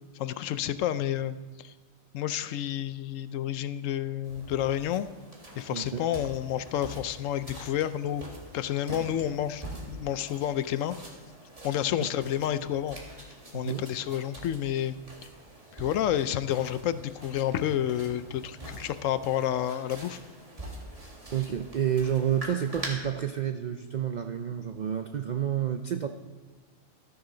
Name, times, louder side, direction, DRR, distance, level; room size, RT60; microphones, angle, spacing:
voice 1, 0.1-1.7 2.1-5.1 5.6-8.2 8.5-11.0 11.6-13.0 13.5-15.0 15.7-20.2, left 11 dB, 75° left, 13 dB, 0.9 m, -30 dB
sound 1, 4.2-22.9, right 1 dB, 25° right, 2.0 m, -45 dB
voice 2, 21.3-26.1, right 9 dB, 75° right, 7 dB, 0.4 m, -29 dB
13.5 x 9.9 x 3.9 m, 1.3 s
omnidirectional pair, 1.4 m